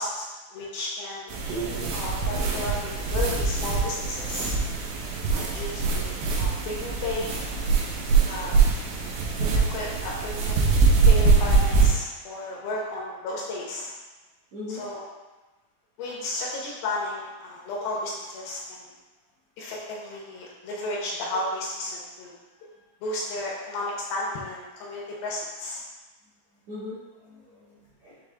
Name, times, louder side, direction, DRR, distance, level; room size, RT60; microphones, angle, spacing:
voice 1, 0.0-1.3 1.9-4.5 5.3-7.4 8.3-8.6 9.4-10.7 11.1-13.9 14.7-15.0 16.0-18.9 19.6-22.4 22.6-22.7 23.0-25.8, left 2 dB, 80° left, -3 dB, 2.4 m, -33 dB
sound 1, 1.3-11.9, right 4 dB, 85° right, 2.8 m, -23 dB
voice 2, 14.5-14.8 22.5-22.7 26.7-28.2, left 3 dB, 70° right, -13 dB, 1.4 m, -41 dB
7.0 x 3.4 x 2.3 m, 1.1 s
omnidirectional pair, 4.7 m